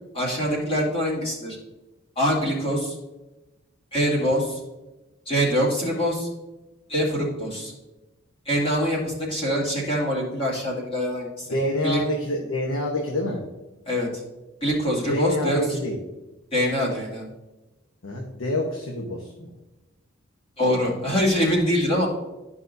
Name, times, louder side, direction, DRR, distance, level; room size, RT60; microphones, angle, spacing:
voice 1, 0.1-1.6 2.2-2.9 3.9-4.6 5.3-6.3 6.9-7.7 8.5-11.5 11.8-12.0 13.9-14.1 14.6-15.6 16.5-17.2 20.6-22.1, equal, 25° left, -5 dB, 2.3 m, -24 dB
voice 2, 11.5-13.4 15.0-16.0 18.0-19.5, left 1 dB, 85° left, 1 dB, 1.1 m, -27 dB
11.5 x 5.4 x 2.6 m, 1.0 s
head